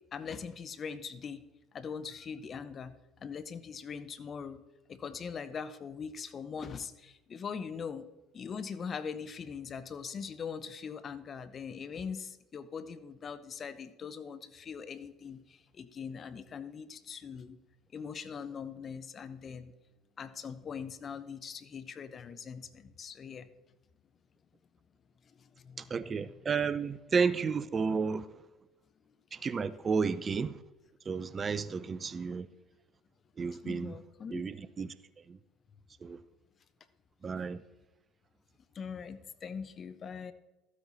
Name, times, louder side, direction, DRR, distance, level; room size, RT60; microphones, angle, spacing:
voice 1, 0.1-1.4 1.7-2.9 3.2-4.6 4.9-8.1 8.3-17.6 17.9-19.7 20.2-23.5 25.3-26.4 31.8-32.0 33.6-34.4 38.7-40.3, left 6 dB, 40° left, 0.8 m, -41 dB
voice 2, 25.8-28.3 29.3-30.6 31.1-32.5 33.4-34.0 34.3-34.9 35.3-35.4 36.0-36.2 37.2-37.6, right 5 dB, 35° right, 0.5 m, -32 dB
13.5 x 8.4 x 4.2 m
hypercardioid pair, 70°, 0 cm